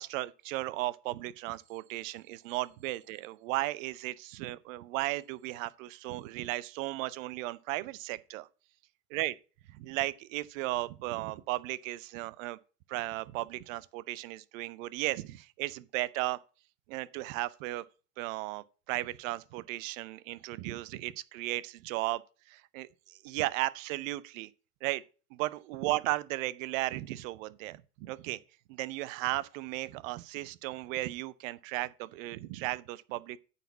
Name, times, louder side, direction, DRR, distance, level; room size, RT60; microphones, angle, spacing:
voice 1, 0.0-8.5 9.1-9.3 9.7-12.6 12.9-16.4 16.9-17.8 18.2-22.2 22.5-24.5 24.8-25.0 25.3-28.4 28.7-33.4, right 18 dB, 55° right, 0.7 m, -35 dB
9.1 x 4.2 x 7.1 m
hypercardioid pair, 95°, 48 cm